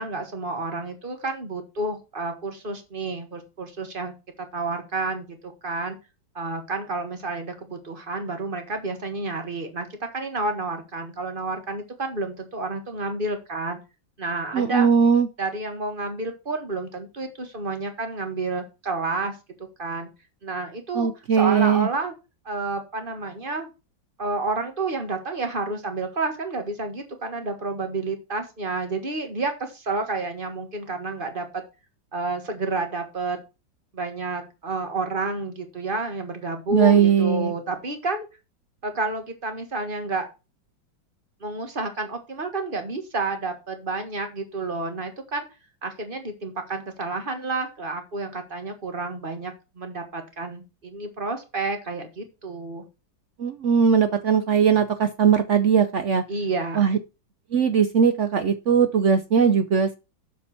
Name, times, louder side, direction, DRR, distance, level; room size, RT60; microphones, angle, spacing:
voice 1, 0.0-6.0 6.4-9.9 10.1-13.8 14.2-14.9 15.4-19.4 19.8-20.1 20.4-21.1 21.3-22.1 22.5-23.7 24.2-31.6 32.1-33.4 33.9-38.3 38.8-40.3 41.4-45.5 45.8-52.9 56.3-56.9, right 3 dB, 30° right, 6 dB, 1.6 m, -30 dB
voice 2, 14.5-15.3 20.9-21.9 36.7-37.5 53.4-56.2 56.8-57.0 57.5-59.9, right 7 dB, 70° right, 10 dB, 0.7 m, -19 dB
7.1 x 6.1 x 5.8 m, 0.28 s
omnidirectional pair, 2.1 m